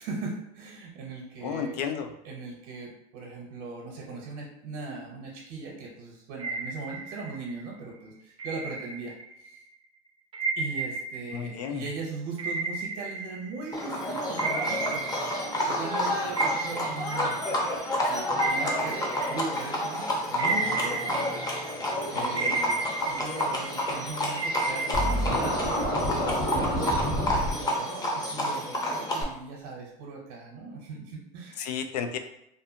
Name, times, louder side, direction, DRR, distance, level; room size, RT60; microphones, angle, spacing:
voice 1, 0.0-1.8 2.2-9.1 9.4-9.6 10.6-17.4 18.0-19.0 19.3-21.7 22.1-31.7, right 3 dB, 65° right, -1 dB, 0.7 m, -39 dB
voice 2, 1.4-2.1 11.3-11.8 22.1-22.6 31.6-32.2, left 7 dB, 80° left, 7 dB, 0.4 m, -32 dB
sound 1, 6.4-7.7 8.4-9.5 10.3-13.9 14.4-16.0 16.4-19.9 20.4-21.9 22.4-24.0 24.4-26.1, right 3 dB, 25° right, 0.5 m, -33 dB
Livestock farm animals working animals, 13.7-29.2, left 1 dB, 20° left, 0.6 m, -30 dB
Scratching (performance technique), 24.9-27.5, equal, 55° left, 1.2 m, -28 dB
2.6 x 2.4 x 2.6 m, 0.80 s
supercardioid pair, 110°, 20 cm